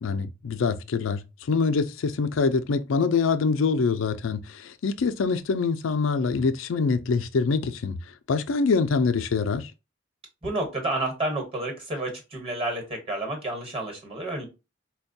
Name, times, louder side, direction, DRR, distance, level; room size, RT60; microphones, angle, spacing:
voice 1, 0.0-8.0 8.3-9.7, left 4 dB, 85° left, 0.4 m, -25 dB
voice 2, 10.4-14.5, right 2 dB, 30° right, 1.2 m, -30 dB
4.3 x 2.3 x 2.6 m
head